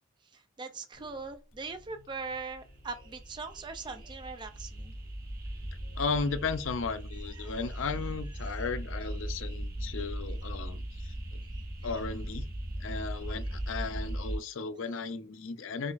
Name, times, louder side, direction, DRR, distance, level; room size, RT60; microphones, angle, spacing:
voice 1, 0.2-4.9 7.3-7.7 8.5-8.7 9.5-9.6 9.9-10.0 11.4-11.7, right 4 dB, 20° right, 0.3 m, -41 dB
sound 1, 0.9-6.7, left 1 dB, 90° left, 1.0 m, -58 dB
sound 2, 2.5-14.4, right 1 dB, 45° right, 0.9 m, -38 dB
voice 2, 6.0-11.1 11.8-12.5 12.8-15.9, left 4 dB, 70° left, 0.5 m, -35 dB
4.9 x 2.4 x 2.5 m
head